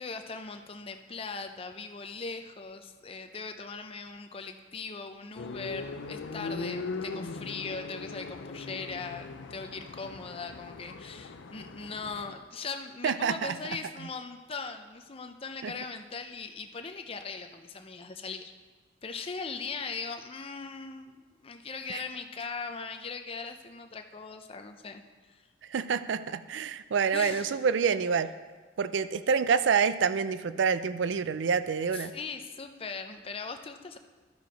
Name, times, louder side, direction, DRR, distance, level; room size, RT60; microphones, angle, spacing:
voice 1, 0.0-18.5 19.0-25.0 25.3-25.5 27.1-27.6 31.9-34.0, left 4 dB, 30° left, 7 dB, 0.5 m, -40 dB
sound 1, 5.4-12.3, left 3 dB, 80° left, 0.5 m, -40 dB
voice 2, 13.0-13.6 15.6-15.7 21.9-22.0 25.7-28.3 28.8-32.1, right 6 dB, 75° right, 13 dB, 0.4 m, -27 dB
12.0 x 4.7 x 5.2 m, 1.3 s
head